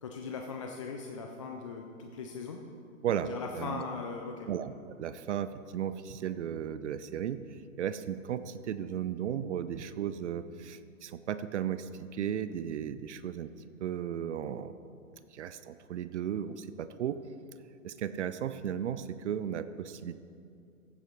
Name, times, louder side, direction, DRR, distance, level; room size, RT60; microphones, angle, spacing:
voice 1, 0.0-2.6 3.3-4.5, left 5 dB, 25° left, 2 dB, 0.4 m, -39 dB
voice 2, 3.0-3.8 4.5-13.5 13.8-14.8 15.3-17.2 17.8-20.2, right 9 dB, 55° right, 13 dB, 0.5 m, -35 dB
15.5 x 9.0 x 3.1 m, 2.4 s
hypercardioid pair, 130°, 42 cm